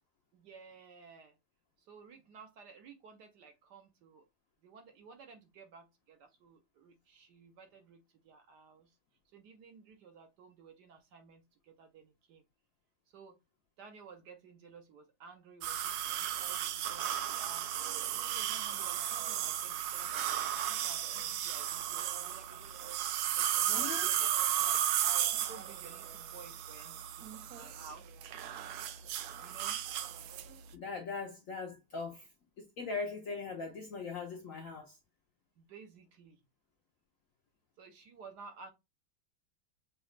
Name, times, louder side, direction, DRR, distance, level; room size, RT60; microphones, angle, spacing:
voice 1, 0.3-1.3 1.8-4.2 4.6-9.0 9.3-12.4 13.1-13.4 13.8-17.7 18.1-28.1 29.4-29.8 35.6-36.4 37.8-38.7, right 5 dB, 65° right, 1.2 m, -55 dB
sound 1, 15.6-30.5, right 11 dB, 85° right, 0.8 m, -34 dB
voice 2, 23.7-24.1 30.7-32.3 32.6-35.0, left 4 dB, 60° left, 0.8 m, -40 dB
6.2 x 2.4 x 3.1 m
omnidirectional pair, 2.2 m